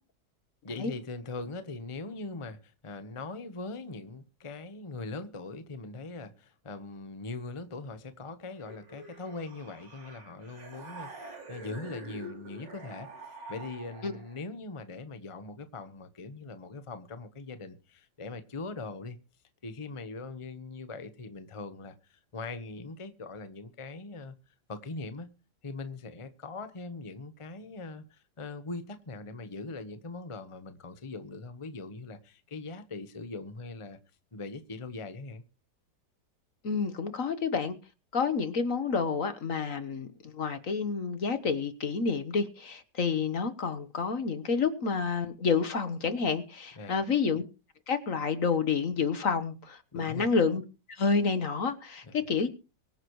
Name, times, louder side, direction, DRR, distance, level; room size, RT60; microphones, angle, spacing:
voice 1, 0.6-13.1 13.5-19.2 19.6-24.3 24.7-25.3 25.6-34.0 34.3-35.4 46.8-47.1 49.9-50.3 52.1-52.3, left 3 dB, 20° left, 1.0 m, -41 dB
sound 1, 8.6-14.4, right 2 dB, 85° right, 3.9 m, -46 dB
voice 2, 36.6-37.8 38.1-47.4 47.9-50.6 50.9-52.5, left 5 dB, 50° left, 1.5 m, -29 dB
24.0 x 9.8 x 3.1 m
omnidirectional pair, 1.9 m